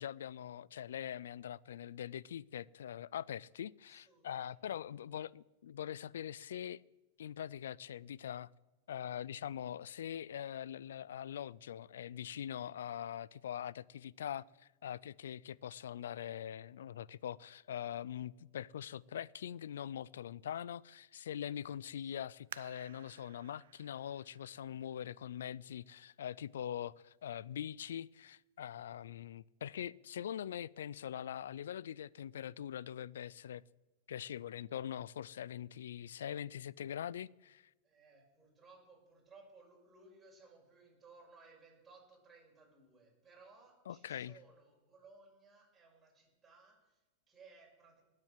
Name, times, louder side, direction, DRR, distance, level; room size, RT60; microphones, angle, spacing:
voice 1, 0.0-6.8 7.2-8.5 8.9-33.6 34.1-37.6 43.9-44.4, left 10 dB, 90° left, 0.4 m, -43 dB
voice 2, 3.9-4.9 22.0-22.4 37.8-48.0, right 3 dB, 10° right, 6.0 m, -61 dB
sound 1, 22.5-25.9 26.5-26.6 27.2-27.6 28.0-28.1, right 10 dB, 80° right, 0.4 m, -55 dB
20.0 x 7.6 x 7.4 m
supercardioid pair, 150°, 0 cm